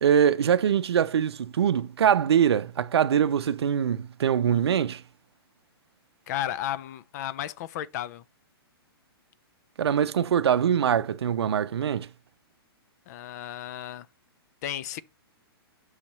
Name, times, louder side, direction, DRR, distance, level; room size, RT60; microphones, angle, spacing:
voice 1, 0.0-5.0 9.8-12.1, right 8 dB, 85° right, 0.5 m, -23 dB
voice 2, 6.3-8.2 13.1-14.1 14.6-15.0, left 12 dB, 40° left, 0.5 m, -33 dB
6.4 x 2.9 x 5.4 m
hypercardioid pair, 150°, 13 cm